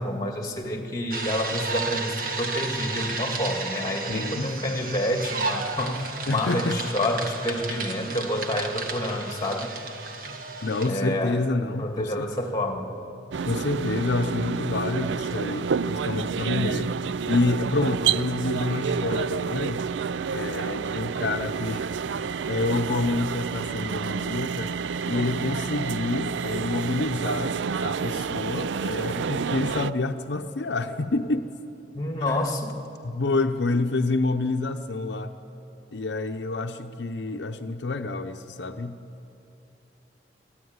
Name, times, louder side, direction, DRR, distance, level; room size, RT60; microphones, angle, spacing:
voice 1, 0.0-9.7 10.2-10.3 10.8-11.4 11.8-12.9 31.9-32.8, left 1 dB, 20° left, 3 dB, 2.2 m, -28 dB
sound 1, 1.1-10.9, right 4 dB, 50° right, 1.7 m, -33 dB
voice 2, 4.1-4.7 6.3-6.8 10.6-12.3 13.5-16.9 17.3-19.8 20.3-21.9 22.2-24.7 25.1-31.5 32.3-32.4 33.0-35.3 35.9-39.0, left 2 dB, 70° left, 6 dB, 0.7 m, -28 dB
sound 2, 13.3-29.9, right 6 dB, 85° right, 0.4 m, -29 dB
24.5 x 15.0 x 9.6 m, 2.9 s
head